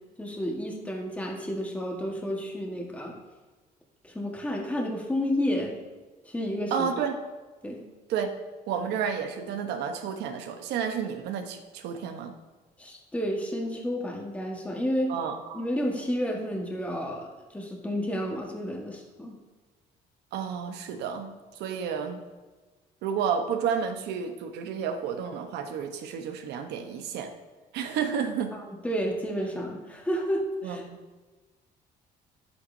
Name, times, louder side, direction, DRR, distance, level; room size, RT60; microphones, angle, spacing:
voice 1, 0.2-3.2 4.0-5.8 6.2-6.9 7.6-7.8 12.8-15.1 15.5-19.4 28.5-30.8, equal, 10° left, 0 dB, 1.4 m, -31 dB
voice 2, 6.7-7.1 8.1-8.3 8.7-12.4 15.1-15.7 20.3-22.2 23.0-27.3 27.7-28.6 30.6-31.0, right 7 dB, 85° right, 6 dB, 1.0 m, -31 dB
9.7 x 8.4 x 2.7 m, 1.2 s
cardioid pair, 110°, 17 cm